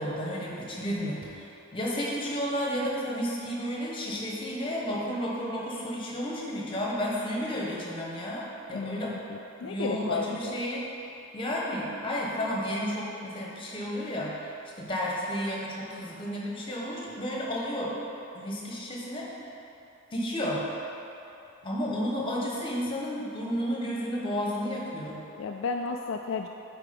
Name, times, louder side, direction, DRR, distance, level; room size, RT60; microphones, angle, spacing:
voice 1, 0.0-9.2 9.6-10.9 11.3-14.3 14.8-18.0 18.3-19.3 20.1-20.6 21.6-25.2, equal, 25° left, -3 dB, 1.1 m, -32 dB
voice 2, 8.7-10.6 25.4-26.5, left 4 dB, 60° left, 3 dB, 0.3 m, -33 dB
8.3 x 4.6 x 5.2 m, 2.9 s
head